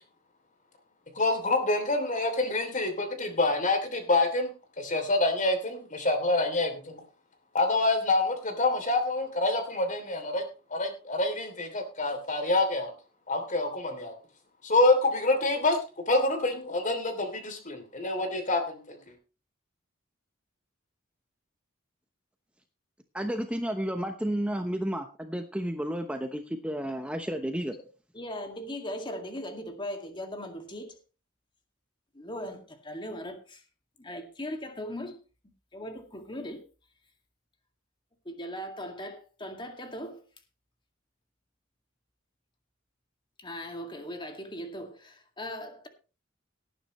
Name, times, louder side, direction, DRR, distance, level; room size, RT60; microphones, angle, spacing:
voice 1, 1.1-7.0 7.5-10.4 10.7-12.9 13.3-14.1 14.6-15.8 16.1-19.0, left 2 dB, 40° left, 3.0 m, -27 dB
voice 2, 23.1-27.7, equal, 5° right, 0.9 m, -32 dB
voice 3, 28.1-31.0 32.1-33.6 34.0-35.2 35.7-36.6 38.3-40.2 43.4-45.9, equal, 25° left, 2.1 m, -39 dB
18.5 x 9.7 x 3.1 m
head